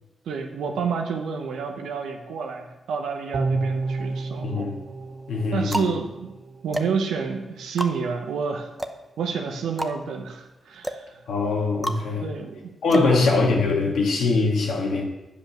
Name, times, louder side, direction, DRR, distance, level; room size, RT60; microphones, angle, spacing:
voice 1, 0.3-4.7 5.5-6.3 6.6-8.7 9.2-11.2 12.2-13.4, right 5 dB, 90° right, 4 dB, 0.8 m, -29 dB
sound 1, 3.3-6.7 7.0-7.1, right 3 dB, 55° right, 1.1 m, -30 dB
sound 2, 3.8-4.5 5.2-13.9, equal, 10° right, 0.8 m, -34 dB
voice 2, 4.4-4.8 5.3-5.9 11.3-12.3 12.8-15.0, left 4 dB, 80° left, 0 dB, 1.7 m, -22 dB
8.7 x 5.3 x 5.8 m, 1.0 s
cardioid pair, 65°, 0 cm